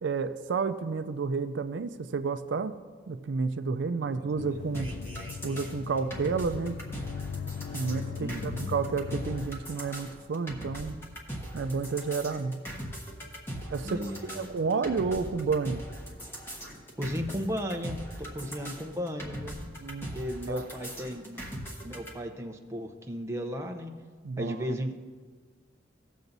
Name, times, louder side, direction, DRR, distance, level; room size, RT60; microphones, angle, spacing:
voice 1, 0.0-2.7 3.1-4.9 5.4-6.8 7.7-11.0 11.5-12.6 13.7-14.0 14.3-15.8 19.8-20.1 20.5-20.6 24.2-24.6, right 4 dB, 75° right, 10 dB, 0.4 m, -30 dB
sound 1, 4.4-9.5, left 6 dB, 65° left, 0.3 m, -39 dB
sound 2, 4.7-22.1, equal, 15° left, 1.2 m, -40 dB
voice 2, 8.2-8.7 13.8-14.5 17.0-18.0 18.3-19.6 20.1-21.4 21.8-23.9 24.4-24.9, equal, 15° right, 4 dB, 0.7 m, -35 dB
17.0 x 7.0 x 2.7 m, 1.5 s
head